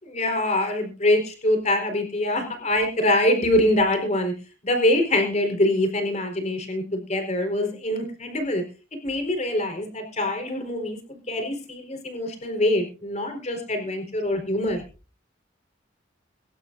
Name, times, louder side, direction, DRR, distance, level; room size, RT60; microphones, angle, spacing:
voice 1, 0.0-4.3 4.6-8.6 9.0-14.8, left 1 dB, 40° left, 5 dB, 4.3 m, -24 dB
24.0 x 12.0 x 2.6 m, 0.34 s
head